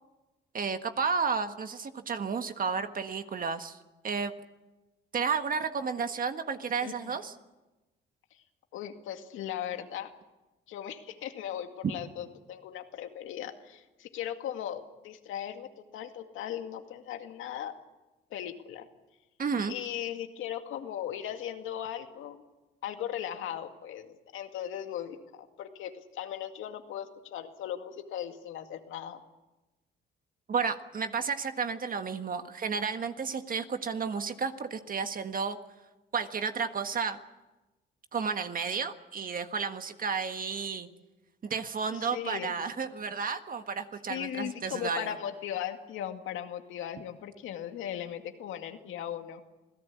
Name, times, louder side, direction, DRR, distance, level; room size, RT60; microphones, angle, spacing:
voice 1, 0.5-3.8 4.0-4.3 5.1-7.3 19.4-19.7 30.5-35.6 36.1-37.2 38.1-40.9 41.4-45.1, right 5 dB, 45° right, 8 dB, 1.6 m, -32 dB
voice 2, 6.8-7.2 8.3-8.4 8.7-10.1 10.7-17.8 18.3-18.9 19.7-22.4 22.8-29.2 41.9-42.5 44.1-49.4, left 10 dB, 90° left, 6 dB, 2.2 m, -38 dB
27.5 x 17.5 x 8.5 m, 1.1 s
cardioid pair, 90°, 20 cm